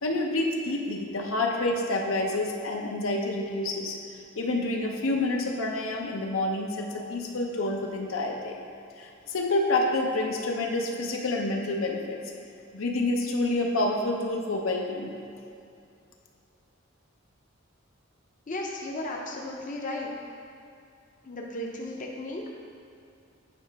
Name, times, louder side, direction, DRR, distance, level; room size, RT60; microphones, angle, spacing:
voice 1, 0.0-4.0 4.4-8.6 9.0-12.2 12.7-15.1, left 2 dB, 80° left, 1 dB, 0.7 m, -28 dB
voice 2, 18.5-20.1 21.3-22.5, left 1 dB, 40° left, -1 dB, 0.6 m, -35 dB
8.6 x 4.6 x 3.4 m, 2.5 s
head